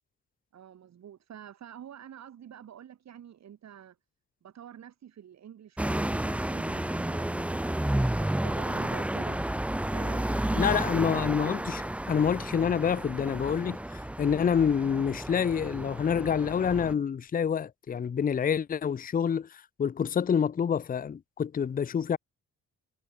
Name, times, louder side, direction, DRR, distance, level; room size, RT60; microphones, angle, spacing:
voice 1, 0.5-4.0 4.4-9.4 9.9-10.8, right 9 dB, 60° right, 5.2 m, -48 dB
sound 1, 5.8-16.9, right 1 dB, 5° right, 0.8 m, -31 dB
voice 2, 10.6-22.2, left 7 dB, 30° left, 0.6 m, -27 dB
cardioid pair, 90°, 30 cm